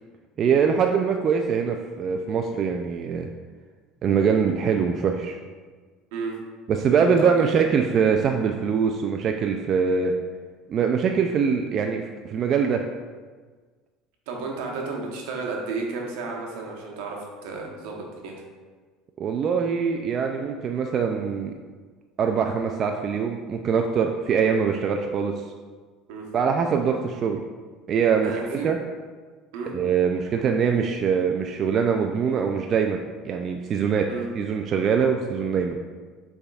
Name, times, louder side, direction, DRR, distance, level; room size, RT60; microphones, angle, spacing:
voice 1, 0.4-3.3 4.0-5.4 6.7-10.1 10.7-12.8 19.2-21.5 22.2-25.3 26.3-27.4 27.9-28.8 29.7-33.0 33.2-34.1 34.4-35.8, right 6 dB, 45° right, 3 dB, 0.3 m, -23 dB
voice 2, 14.3-18.3 24.4-24.5 26.1-26.2 28.2-28.7 29.5-29.7 34.1-34.3, right 4 dB, 80° right, 0 dB, 0.9 m, -32 dB
6.5 x 3.4 x 2.3 m, 1.4 s
supercardioid pair, 110°, 0 cm